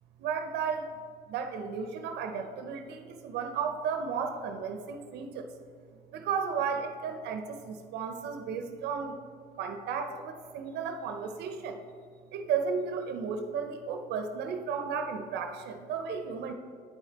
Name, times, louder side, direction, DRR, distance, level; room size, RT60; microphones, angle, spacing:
voice 1, 0.2-0.9 1.3-5.5 6.1-9.1 9.6-11.8 12.3-16.5, right 6 dB, 80° right, 6 dB, 0.6 m, -34 dB
9.4 x 5.0 x 4.1 m, 2.1 s
cardioid pair, 110°, 17 cm